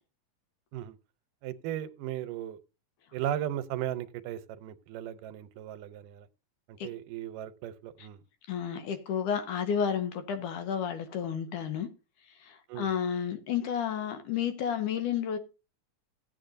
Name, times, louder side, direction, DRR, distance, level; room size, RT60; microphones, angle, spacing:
voice 1, 1.4-2.6 3.1-6.3 6.7-8.2 12.7-12.9, right 11 dB, 80° right, 2.3 m, -36 dB
voice 2, 8.5-11.9 12.3-15.4, left 8 dB, 75° left, 2.6 m, -31 dB
16.0 x 8.7 x 2.5 m
omnidirectional pair, 3.8 m